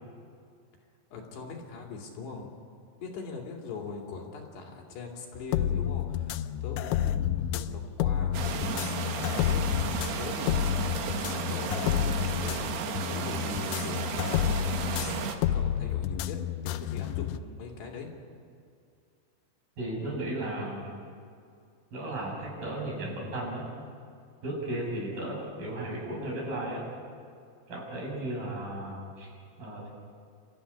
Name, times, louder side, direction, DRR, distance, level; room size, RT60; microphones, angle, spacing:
voice 1, 1.1-2.5 3.0-10.9 11.5-16.4 16.6-18.1, left 4 dB, 65° left, 0 dB, 4.6 m, -42 dB
sound 1, 5.4-17.4, left 10 dB, 80° left, 3.0 m, -30 dB
sound 2, 8.3-15.3, right 6 dB, 65° right, 3.3 m, -34 dB
voice 2, 19.8-20.9 21.9-23.7 24.4-26.8 27.7-29.9, right 1 dB, 50° right, -3 dB, 8.4 m, -35 dB
29.0 x 14.0 x 9.9 m, 2.4 s
omnidirectional pair, 5.4 m